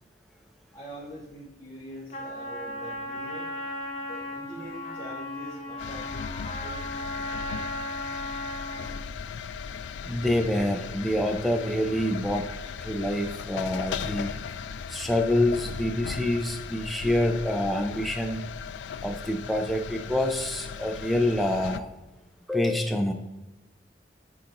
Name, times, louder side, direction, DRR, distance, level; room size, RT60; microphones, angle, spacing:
voice 1, 0.7-3.5 4.0-6.9, equal, 20° left, -10 dB, 1.7 m, -43 dB
Trumpet, 2.1-9.0, left 1 dB, 40° left, 0.9 m, -36 dB
sound 1, 5.8-21.8, left 6 dB, 90° left, 0.3 m, -37 dB
voice 2, 10.1-12.5 12.8-14.3 14.9-18.4 19.0-21.9 22.5-23.1, left 1 dB, ahead, 2 dB, 0.5 m, -26 dB
10.0 x 3.9 x 2.9 m, 1.0 s
head